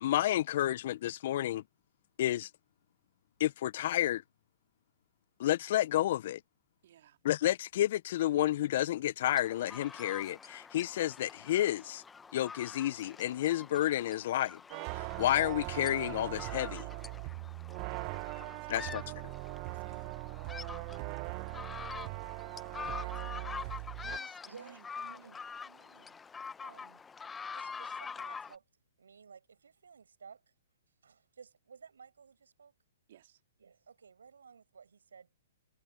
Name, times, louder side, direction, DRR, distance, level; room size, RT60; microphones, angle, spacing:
voice 1, 0.0-1.6 2.2-2.5 3.4-4.2 5.4-6.4 7.2-12.0 12.3-14.6 14.9-16.9 18.7-19.0, left 13 dB, 55° left, 0.7 m, -30 dB
voice 2, 6.8-7.2 18.7-19.0 19.7-20.2 23.9-24.9 33.1-33.4, right 11 dB, 60° right, 3.5 m, -58 dB
sound 1, 9.2-28.6, left 5 dB, 10° left, 1.1 m, -46 dB
sound 2, 14.7-24.2, right 28 dB, 40° right, 0.9 m, -40 dB
voice 3, 22.8-23.8 24.4-26.2 26.6-27.0 27.5-28.6 29.0-30.4 31.0-32.7 33.6-35.4, right 6 dB, 80° right, 6.6 m, -55 dB
hypercardioid pair, 125°, 0 cm